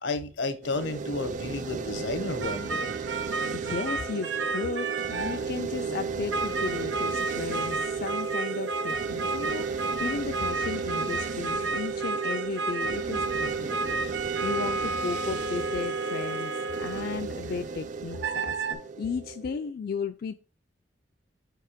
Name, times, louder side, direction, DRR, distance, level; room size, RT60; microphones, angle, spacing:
voice 1, 0.0-2.9, left 3 dB, 80° left, 0.9 m, -32 dB
sound 1, 0.6-19.7, right 5 dB, 45° right, 0.4 m, -34 dB
sound 2, 2.4-5.5 6.3-17.5 18.1-18.7, right 3 dB, 85° right, 0.8 m, -32 dB
voice 2, 3.5-20.3, left 5 dB, 55° left, 0.4 m, -35 dB
5.0 x 4.6 x 5.0 m
head